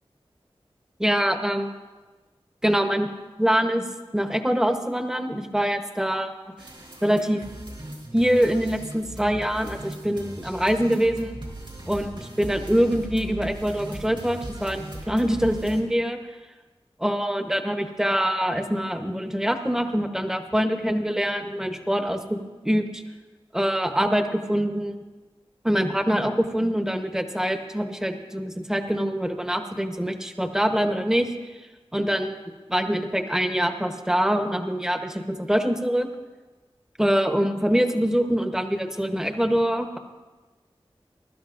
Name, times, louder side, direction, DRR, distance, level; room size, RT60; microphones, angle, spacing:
voice 1, 1.0-1.7 2.6-3.1 3.4-3.8 4.1-6.3 7.0-7.4 8.1-11.4 11.9-16.2 17.0-23.0 23.5-25.0 25.6-31.3 31.9-32.4 32.7-36.1 37.0-40.0, equal, 5° right, 6 dB, 0.9 m, -24 dB
sound 1, 6.6-15.8, right 1 dB, 60° right, 3.7 m, -39 dB
22.0 x 12.0 x 2.5 m, 1.3 s
wide cardioid pair, 60°, 10 cm